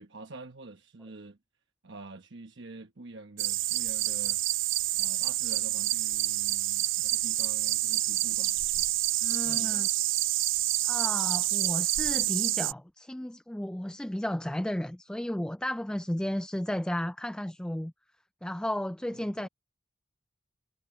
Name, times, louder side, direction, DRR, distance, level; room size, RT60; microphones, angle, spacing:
voice 1, 0.0-1.4 1.8-4.4 4.9-8.6 9.4-9.9 19.1-19.5, right 2 dB, 65° right, 1.1 m, -47 dB
sound 1, 3.4-12.7, right 16 dB, 85° right, 0.5 m, -28 dB
voice 2, 9.2-9.9 10.9-17.9 18.4-19.5, left 1 dB, 5° left, 0.3 m, -33 dB
head